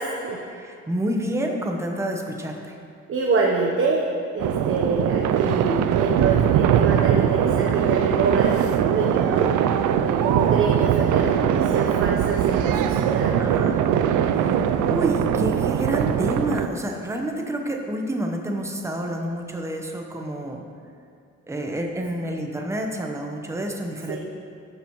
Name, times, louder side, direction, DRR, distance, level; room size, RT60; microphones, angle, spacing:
voice 1, 0.0-0.4 3.1-9.7 10.0-13.3 24.1-24.2, right 4 dB, 45° right, -1 dB, 1.0 m, -26 dB
voice 2, 0.5-2.8 13.4-13.8 14.2-20.6 21.5-24.2, right 1 dB, 10° right, 1 dB, 1.0 m, -28 dB
sound 1, 4.4-16.7, right 9 dB, 80° right, 0.5 m, -21 dB
13.0 x 6.9 x 3.1 m, 2.3 s
cardioid pair, 90°, 30 cm